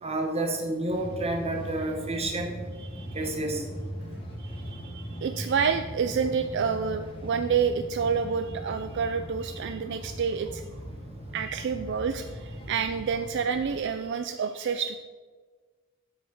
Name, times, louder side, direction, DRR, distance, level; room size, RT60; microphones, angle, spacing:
voice 1, 0.0-2.6 3.1-3.6, right 2 dB, 30° right, 3 dB, 1.3 m, -29 dB
sound 1, 0.9-13.8, equal, 25° left, 1.4 m, -39 dB
voice 2, 2.8-3.2 4.4-10.6 11.3-15.0, right 6 dB, 60° right, 9 dB, 0.4 m, -29 dB
7.9 x 6.4 x 6.0 m, 1.5 s
head